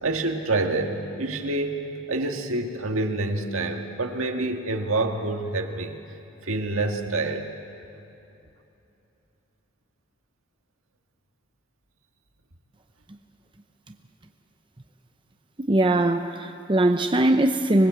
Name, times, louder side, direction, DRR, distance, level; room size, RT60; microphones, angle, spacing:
voice 1, 0.0-6.0 6.4-7.5, right 2 dB, 70° right, 4 dB, 1.8 m, -27 dB
voice 2, 15.6-17.9, right 1 dB, 20° right, 6 dB, 0.7 m, -21 dB
25.5 x 20.5 x 8.2 m, 2.9 s
head